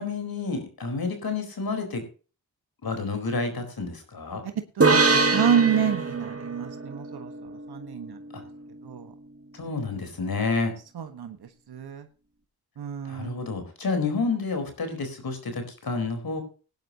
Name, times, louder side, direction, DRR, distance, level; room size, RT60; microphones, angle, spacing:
voice 1, 0.0-2.0 2.8-4.4 8.3-8.4 9.5-10.7 13.0-16.4, left 4 dB, 70° left, 6 dB, 4.4 m, -29 dB
voice 2, 4.5-8.2 8.8-9.1 10.9-12.1 12.8-13.4, right 8 dB, 85° right, 7 dB, 1.4 m, -29 dB
sound 1, 4.8-8.3, right 3 dB, 40° right, 2.2 m, -24 dB
19.0 x 11.0 x 2.9 m, 0.36 s
cardioid pair, 70°, 37 cm